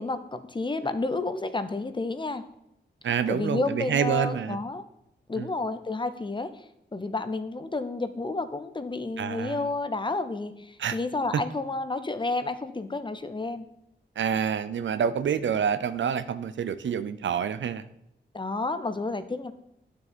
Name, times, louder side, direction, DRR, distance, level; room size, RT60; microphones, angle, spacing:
voice 1, 0.0-2.4 3.3-4.8 5.3-6.5 6.9-13.7 18.3-19.5, left 3 dB, 25° left, 11 dB, 0.7 m, -30 dB
voice 2, 3.0-4.6 5.4-5.5 9.2-9.7 10.8-11.0 11.3-11.4 14.2-17.8, right 7 dB, 90° right, 13 dB, 0.6 m, -27 dB
11.0 x 6.9 x 4.4 m, 0.81 s
wide cardioid pair, 120°, 19 cm